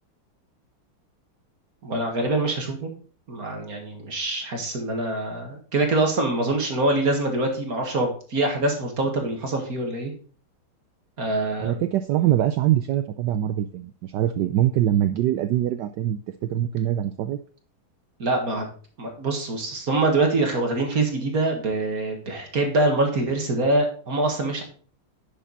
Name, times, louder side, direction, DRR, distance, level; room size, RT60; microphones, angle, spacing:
voice 1, 1.8-2.9 3.3-10.1 11.2-11.8 18.2-18.7 19.0-24.6, right 2 dB, 45° right, 2 dB, 2.0 m, -24 dB
voice 2, 11.6-17.4, right 12 dB, 80° right, 11 dB, 0.9 m, -23 dB
10.0 x 6.8 x 4.0 m, 0.42 s
omnidirectional pair, 2.4 m